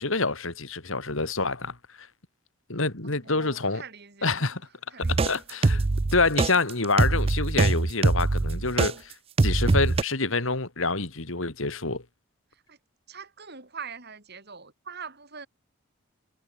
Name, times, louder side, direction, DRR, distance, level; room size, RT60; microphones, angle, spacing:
voice 1, 0.0-2.1 2.7-3.8 4.2-4.6 5.0-5.8 6.1-9.1 9.4-12.0, left 3 dB, 65° left, 2.9 m, -27 dB
voice 2, 3.0-4.4 4.9-5.4 12.5-12.8 13.1-15.5, right 5 dB, 50° right, 6.5 m, -43 dB
sound 1, 5.0-8.9 9.4-10.0, right 3 dB, 25° right, 0.4 m, -23 dB
head